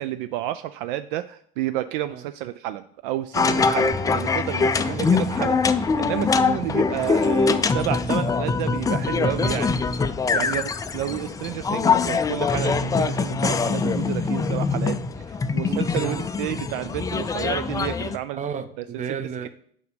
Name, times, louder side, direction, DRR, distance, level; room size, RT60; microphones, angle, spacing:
voice 1, 0.0-5.6 6.0-10.0 10.3-15.0 15.5-18.4, right 13 dB, 60° right, 0.4 m, -30 dB
sound 1, 3.3-18.2, left 4 dB, 10° left, 0.4 m, -23 dB
voice 2, 3.4-3.8 4.6-5.5 6.5-6.6 10.4-10.6 15.6-16.3 18.3-19.5, right 7 dB, 25° right, 0.7 m, -34 dB
Bass guitar, 3.9-10.2, left 4 dB, 10° right, 1.5 m, -40 dB
6.6 x 5.3 x 5.1 m
hypercardioid pair, 80°, 30 cm